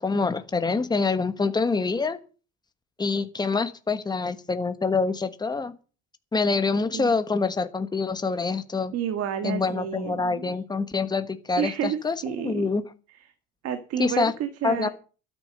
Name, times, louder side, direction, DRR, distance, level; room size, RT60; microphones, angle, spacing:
voice 1, 0.0-2.2 3.0-5.7 6.3-8.9 9.4-12.8 14.0-14.3 14.6-14.9, left 4 dB, 15° left, 9 dB, 1.3 m, -26 dB
voice 2, 8.9-10.5 11.6-12.7 13.6-14.9, right 9 dB, 55° right, 9 dB, 1.8 m, -30 dB
12.5 x 9.6 x 6.6 m, 0.36 s
cardioid pair, 145°, 30 cm